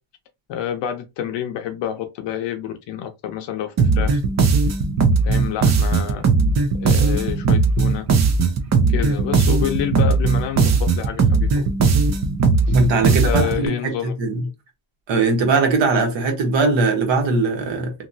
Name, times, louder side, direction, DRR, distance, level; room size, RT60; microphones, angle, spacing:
voice 1, 0.5-4.2 5.2-6.2 6.8-8.0 8.9-11.7 12.7-12.8 13.0-14.1, left 10 dB, 60° left, 0.6 m, -28 dB
sound 1, 3.8-13.6, right 4 dB, 35° right, 0.5 m, -18 dB
voice 2, 12.7-14.4 15.1-17.9, right 3 dB, 65° right, 1.3 m, -20 dB
2.9 x 2.6 x 2.6 m
cardioid pair, 160°, 49 cm